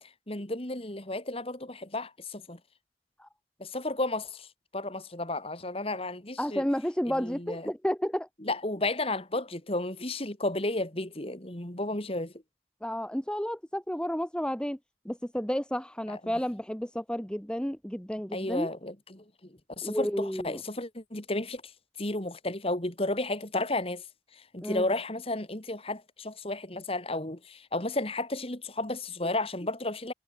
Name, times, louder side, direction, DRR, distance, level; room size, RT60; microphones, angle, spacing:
voice 1, 0.0-2.6 3.6-4.5 4.7-6.6 7.0-7.7 8.4-12.3 16.1-16.3 18.3-21.6 22.0-24.0 24.3-30.1, left 2 dB, 35° left, 2.6 m, -33 dB
voice 2, 6.4-8.3 12.8-14.8 15.0-18.7 19.8-20.6 24.6-24.9, equal, 5° left, 1.0 m, -31 dB
head